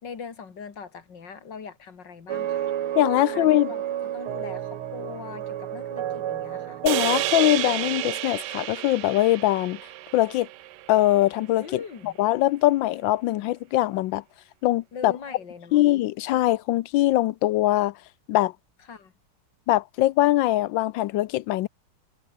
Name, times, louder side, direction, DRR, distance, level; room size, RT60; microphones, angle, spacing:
voice 1, 0.0-2.7 3.2-6.8 11.6-12.2 14.9-15.9 18.9-19.1, left 6 dB, 55° left, 3.0 m, -41 dB
sound 1, 2.3-8.1, right 11 dB, 90° right, 2.0 m, -32 dB
voice 2, 3.0-3.7 6.8-9.8 10.1-10.5 10.9-14.2 14.6-15.1 15.7-17.9 18.3-18.5 19.7-21.7, left 15 dB, 75° left, 1.2 m, -22 dB
sound 2, 6.9-11.3, right 15 dB, 70° right, 1.1 m, -30 dB
omnidirectional pair, 2.3 m